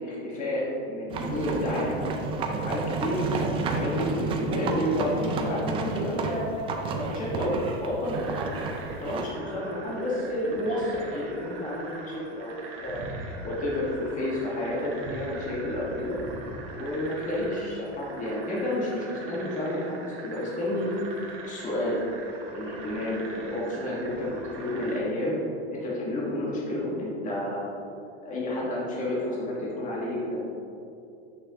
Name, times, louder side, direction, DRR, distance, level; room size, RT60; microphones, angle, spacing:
voice 1, 0.0-2.0 2.5-3.2 3.6-6.5 6.9-13.0 13.4-16.2 16.7-20.9 21.4-22.0 22.5-25.3 25.7-27.6 28.2-30.4, left 1 dB, 20° left, -5 dB, 1.3 m, -30 dB
sound 1, 1.1-9.3, right 4 dB, 15° right, 0.3 m, -31 dB
sound 2, 8.1-25.0, right 3 dB, 35° right, 1.2 m, -42 dB
8.8 x 6.1 x 2.8 m, 2.7 s
supercardioid pair, 135°, 35 cm